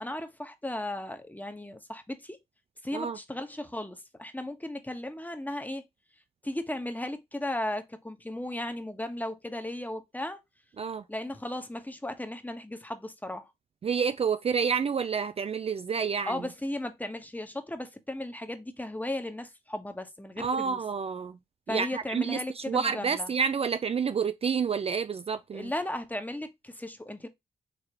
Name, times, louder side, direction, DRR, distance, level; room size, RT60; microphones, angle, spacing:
voice 1, 0.0-2.4 2.8-5.8 6.4-10.4 11.1-13.5 16.3-20.8 21.7-23.3 25.5-27.3, left 1 dB, 10° left, 1.2 m, -36 dB
voice 2, 13.8-16.4 20.4-21.4 21.7-25.7, right 6 dB, 40° right, 0.4 m, -29 dB
5.0 x 3.2 x 2.9 m
supercardioid pair, 45°, 16 cm